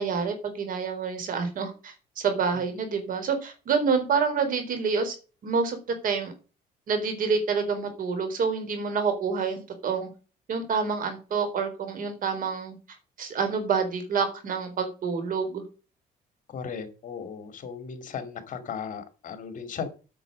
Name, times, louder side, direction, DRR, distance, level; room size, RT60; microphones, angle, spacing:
voice 1, 0.0-5.1 5.4-5.8 6.0-6.3 6.9-10.1 10.5-12.8 13.2-15.6, right 5 dB, 55° right, 8 dB, 4.1 m, -27 dB
voice 2, 16.5-19.9, left 6 dB, 50° left, 9 dB, 2.5 m, -36 dB
9.0 x 7.4 x 6.5 m, 0.33 s
cardioid pair, 110°, 17 cm